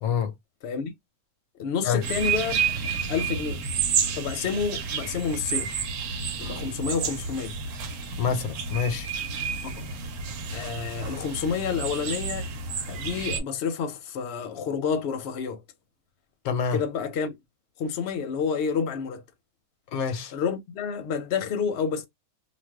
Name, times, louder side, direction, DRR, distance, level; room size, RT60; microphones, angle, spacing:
voice 1, 0.0-0.3 1.8-2.0 8.2-9.1 16.4-16.8 19.9-20.3, left 6 dB, 80° left, 1.1 m, -26 dB
voice 2, 1.6-2.6 3.1-3.6 4.2-5.7 6.4-7.6 9.6-9.9 10.5-12.4 12.9-15.6 16.7-17.4 17.8-19.2 20.3-22.1, left 6 dB, 55° left, 0.8 m, -29 dB
sound 1, 2.0-13.4, right 5 dB, 90° right, 1.1 m, -30 dB
2.5 x 2.2 x 3.3 m
omnidirectional pair, 1.5 m